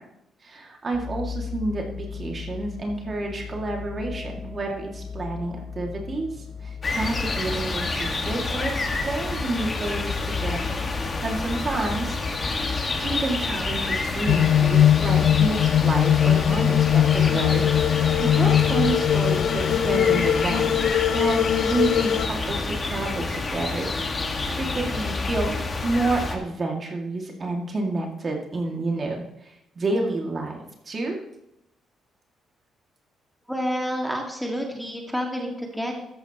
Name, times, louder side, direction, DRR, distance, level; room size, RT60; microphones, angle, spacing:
voice 1, 0.4-6.3 6.6-10.8 11.2-12.2 13.0-20.9 21.1-25.5 25.8-30.6 30.9-31.2, right 2 dB, 40° right, 1 dB, 2.3 m, -29 dB
sound 1, 0.9-12.8, left 6 dB, 20° left, 0.7 m, -37 dB
sound 2, 6.8-26.3, left 3 dB, 35° left, 1.7 m, -28 dB
sound 3, 14.3-22.3, left 10 dB, 70° left, 0.3 m, -20 dB
voice 2, 33.5-36.0, equal, ahead, 1 dB, 2.1 m, -29 dB
13.5 x 10.5 x 3.1 m, 0.84 s
cardioid pair, 90°, 0 cm